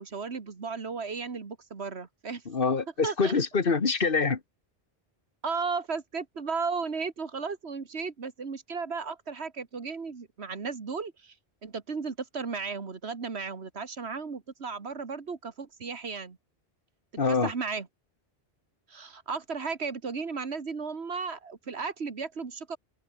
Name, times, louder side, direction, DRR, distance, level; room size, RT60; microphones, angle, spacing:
voice 1, 0.0-2.4 3.0-3.4 5.4-11.3 11.6-16.4 17.3-17.9 18.9-22.8, right 5 dB, 85° right, 2.1 m, -35 dB
voice 2, 2.5-4.4 17.2-17.5, left 4 dB, 60° left, 1.7 m, -25 dB
open air
omnidirectional pair, 1.1 m